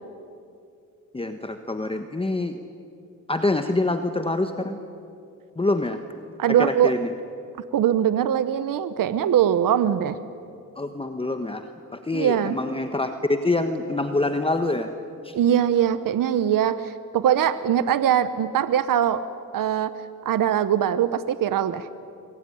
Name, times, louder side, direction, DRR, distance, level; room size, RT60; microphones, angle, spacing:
voice 1, 1.1-2.6 3.3-4.8 5.6-6.0 6.6-7.1 10.8-11.7 11.9-14.9 15.2-15.4, left 2 dB, 15° left, 7 dB, 1.3 m, -25 dB
voice 2, 6.4-6.9 7.7-10.2 12.1-12.6 15.3-19.2 19.5-19.9 20.2-21.9, right 10 dB, 75° right, 13 dB, 1.0 m, -22 dB
23.5 x 21.5 x 10.0 m, 2.5 s
cardioid pair, 95°, 33 cm